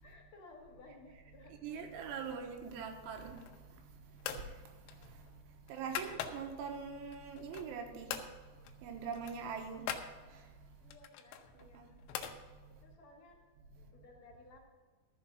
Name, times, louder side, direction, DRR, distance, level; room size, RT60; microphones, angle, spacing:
voice 1, 0.0-2.4 5.9-6.0 10.8-11.9 12.8-13.4 13.8-14.6, left 2 dB, 65° left, 0 dB, 1.8 m, -58 dB
voice 2, 1.6-3.3 5.7-8.1 8.8-9.8, right 6 dB, 85° right, 4 dB, 3.5 m, -42 dB
sound 1, 3.3-3.7 4.2-4.5 4.9-6.7 7.1-7.8 8.1-8.3 8.6-8.8 9.0-10.1 10.9-12.4, left 9 dB, 85° left, 3.3 m, -43 dB
13.0 x 7.2 x 5.8 m, 1.4 s
omnidirectional pair, 5.4 m